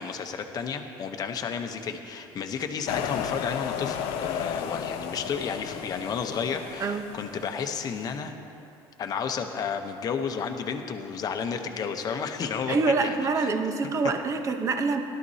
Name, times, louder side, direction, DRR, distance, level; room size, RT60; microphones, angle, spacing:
voice 1, 0.0-8.3 9.0-13.5, left 6 dB, 40° left, 5 dB, 0.8 m, -32 dB
sound 1, 2.9-7.8, left 9 dB, 75° left, 0.7 m, -34 dB
voice 2, 6.8-7.1 12.7-15.0, right 4 dB, 30° right, 6 dB, 0.8 m, -26 dB
17.5 x 12.0 x 2.8 m, 2.7 s
cardioid pair, 135°, 10 cm